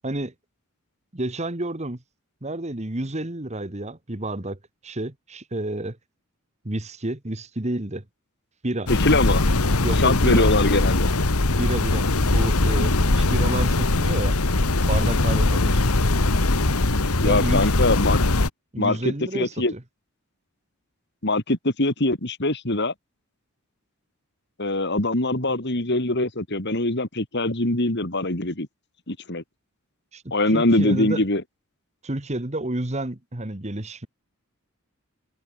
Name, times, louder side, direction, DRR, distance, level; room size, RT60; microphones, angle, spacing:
voice 1, 0.0-0.3 1.1-2.0 2.4-6.0 6.6-8.0 8.6-8.9 9.8-10.5 11.6-14.4 14.8-15.9 17.2-17.7 18.7-19.8 30.1-31.2 32.0-34.1, right 1 dB, 30° right, 1.6 m, -30 dB
sound 1, 8.9-18.5, left 2 dB, 80° left, 1.7 m, -21 dB
voice 2, 8.9-9.4 10.0-11.1 17.2-18.2 18.8-19.7 21.2-22.9 24.6-28.7 29.1-29.4 30.3-31.4, left 2 dB, 50° left, 3.1 m, -23 dB
head